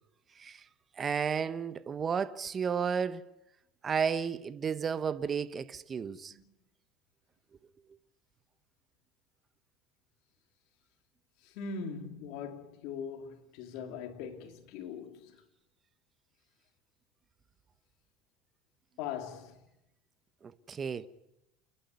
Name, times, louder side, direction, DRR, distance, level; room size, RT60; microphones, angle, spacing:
voice 1, 1.0-3.2 3.8-6.3 20.4-21.1, right 6 dB, 30° right, 1.1 m, -32 dB
voice 2, 11.5-15.3 19.0-19.6, left 6 dB, 70° left, 3.0 m, -40 dB
29.0 x 11.5 x 9.4 m
supercardioid pair, 120°, 0 cm